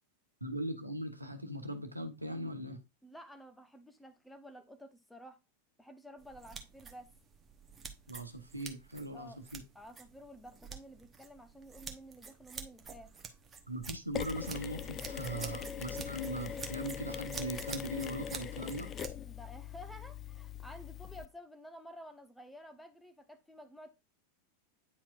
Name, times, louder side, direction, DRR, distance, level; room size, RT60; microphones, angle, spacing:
voice 1, 0.4-2.8 8.1-9.6 13.7-18.9, right 1 dB, 85° right, 0.9 m, -40 dB
voice 2, 3.0-5.4 5.8-7.1 9.1-9.4 9.7-13.1 19.2-23.9, equal, 5° left, 0.9 m, -52 dB
sound 1, 6.2-19.2, right 5 dB, 20° right, 1.0 m, -48 dB
Mechanisms, 14.1-21.3, left 8 dB, 25° left, 0.4 m, -42 dB
9.3 x 4.4 x 2.5 m
figure-of-eight pair, 90°, 0 cm